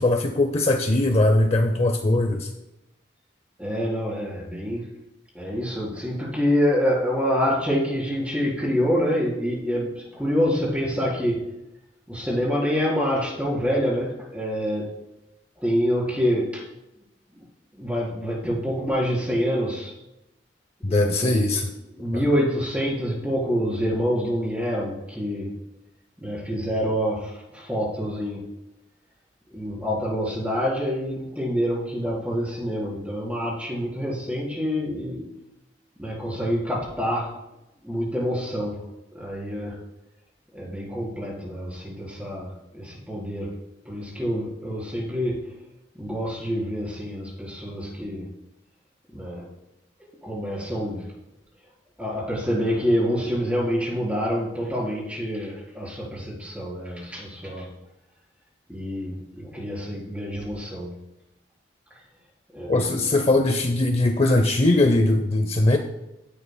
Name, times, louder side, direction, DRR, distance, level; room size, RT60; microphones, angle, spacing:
voice 1, 0.0-2.5 20.8-21.7 62.7-65.8, left 2 dB, 35° left, 6 dB, 0.6 m, -20 dB
voice 2, 3.6-4.9 5.3-11.4 12.1-14.9 15.6-16.6 17.7-19.9 20.8-21.5 21.9-25.5 26.2-28.5 29.5-35.2 36.0-37.3 37.8-38.8 39.1-39.8 40.5-43.5 43.8-45.4 45.9-48.3 49.1-49.5 50.0-51.1 52.0-57.7 58.7-61.0 62.5-63.0, equal, 5° right, -5 dB, 4.1 m, -26 dB
16.0 x 10.5 x 2.2 m, 0.94 s
head